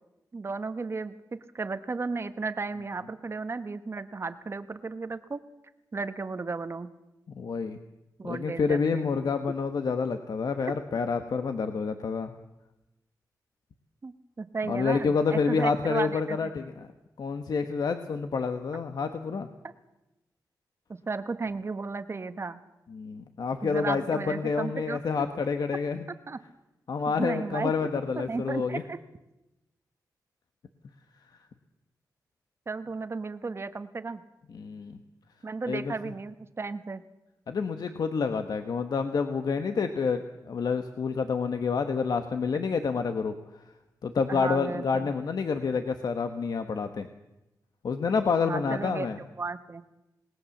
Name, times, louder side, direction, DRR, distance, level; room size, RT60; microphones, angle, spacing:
voice 1, 0.3-5.4 5.9-6.9 8.2-9.1 14.0-16.5 20.9-22.6 23.6-25.0 26.3-26.4 27.2-27.7 28.1-29.0 32.7-34.2 35.4-37.0 44.3-45.1 48.4-49.1 49.4-49.8, right 4 dB, 35° right, 11 dB, 1.2 m, -34 dB
voice 2, 7.3-7.8 8.2-12.3 14.7-16.9 17.2-19.5 22.9-26.1 26.9-28.8 34.5-35.0 35.7-35.9 37.5-43.6 44.0-47.1 47.8-49.2, left 5 dB, 70° left, 8 dB, 1.3 m, -28 dB
27.5 x 19.5 x 7.2 m, 0.96 s
wide cardioid pair, 130°, 7 cm